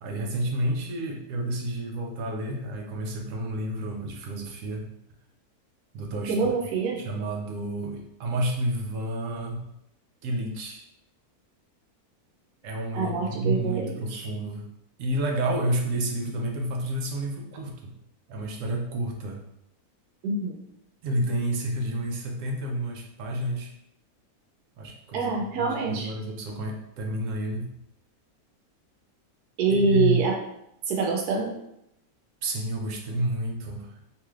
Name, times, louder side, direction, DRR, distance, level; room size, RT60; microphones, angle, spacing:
voice 1, 0.0-4.8 5.9-6.5 6.9-9.7 10.2-10.8 12.6-14.6 15.0-17.9 18.3-19.4 21.0-23.7 24.8-27.7 29.7-30.2 32.4-34.0, right 1 dB, 70° right, 1 dB, 0.8 m, -30 dB
voice 2, 6.2-7.0 12.9-14.3 20.2-20.6 25.1-26.1 29.6-30.4 30.9-31.5, right 4 dB, 90° right, 0 dB, 1.1 m, -25 dB
3.1 x 2.9 x 2.3 m, 0.81 s
omnidirectional pair, 1.6 m